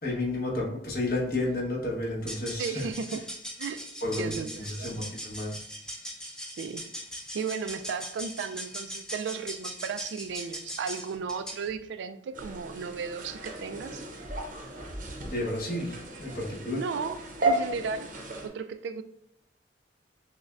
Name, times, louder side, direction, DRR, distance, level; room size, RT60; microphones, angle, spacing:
voice 1, 0.0-2.9 4.0-5.6 15.3-16.8, left 2 dB, 55° left, 1.2 m, -31 dB
sound 1, 2.3-11.7, equal, 5° left, 0.5 m, -40 dB
voice 2, 2.6-3.2 3.6-3.8 4.2-4.9 6.6-6.9 7.3-14.0 16.7-18.1 18.4-19.0, right 5 dB, 75° right, 0.3 m, -35 dB
sound 2, 12.3-18.5, right 2 dB, 50° right, 0.7 m, -34 dB
6.1 x 2.2 x 2.4 m
head